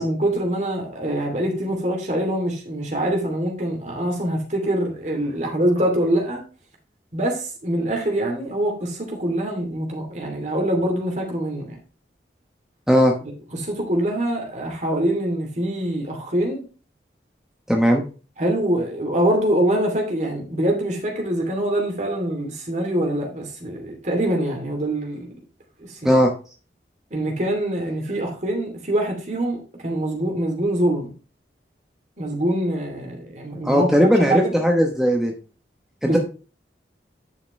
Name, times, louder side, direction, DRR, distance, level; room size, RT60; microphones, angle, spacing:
voice 1, 0.0-6.4 7.1-11.8 13.5-16.6 18.4-25.3 25.8-26.2 27.1-31.1 32.2-34.5 36.0-36.2, right 1 dB, 40° right, 2.7 m, -24 dB
voice 2, 17.7-18.0 26.0-26.3 33.6-35.3 36.0-36.2, equal, 5° right, 1.0 m, -17 dB
10.5 x 5.9 x 3.2 m
head